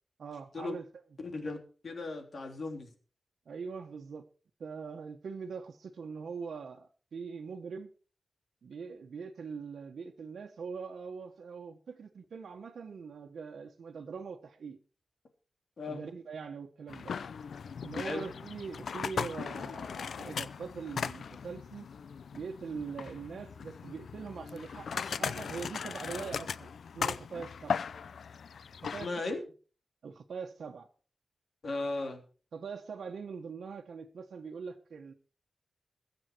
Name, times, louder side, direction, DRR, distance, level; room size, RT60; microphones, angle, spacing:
voice 1, 0.2-0.9 3.4-4.2 4.6-7.9 8.6-14.8 15.9-17.2 17.8-21.9 22.3-27.7 28.9-29.4 30.0-30.9 32.5-35.1, right 5 dB, 85° right, 1 dB, 1.4 m, -42 dB
voice 2, 1.2-1.6 1.8-2.9 15.8-16.0 18.0-18.2 29.0-29.4 31.6-32.2, left 3 dB, 55° left, 4 dB, 3.3 m, -36 dB
sound 1, 16.9-29.1, left 6 dB, 90° left, 0.5 m, -38 dB
21.5 x 7.6 x 4.6 m, 0.39 s
wide cardioid pair, 125°, 0 cm